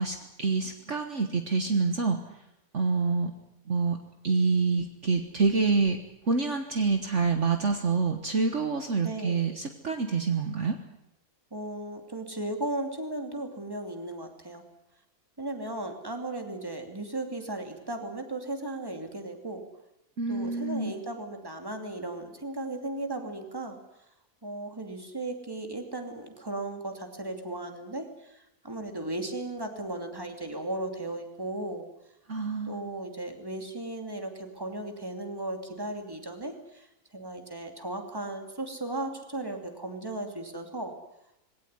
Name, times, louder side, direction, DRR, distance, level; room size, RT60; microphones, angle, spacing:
voice 1, 0.0-2.2 2.7-3.3 3.7-4.0 4.2-6.0 6.3-10.8 20.2-21.0 32.3-32.9, right 4 dB, 55° right, 6 dB, 1.7 m, -27 dB
voice 2, 9.0-9.4 11.5-14.6 15.4-19.6 20.3-23.8 24.4-31.9 32.7-36.9 37.1-40.9, right 2 dB, 15° right, 5 dB, 2.7 m, -36 dB
20.5 x 17.5 x 9.6 m, 0.85 s
omnidirectional pair, 1.6 m